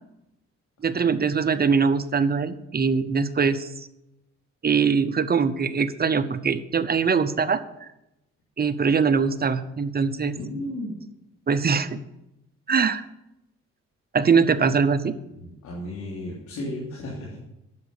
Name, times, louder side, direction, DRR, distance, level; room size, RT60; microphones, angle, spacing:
voice 1, 0.8-3.9 4.6-7.9 8.6-10.3 11.5-12.0 12.7-13.0 14.1-15.1, right 5 dB, 30° right, 12 dB, 0.8 m, -22 dB
voice 2, 10.3-10.9 15.3-17.4, left 1 dB, 80° left, -6 dB, 3.3 m, -34 dB
9.8 x 7.5 x 7.0 m, 0.88 s
cardioid pair, 90°, 30 cm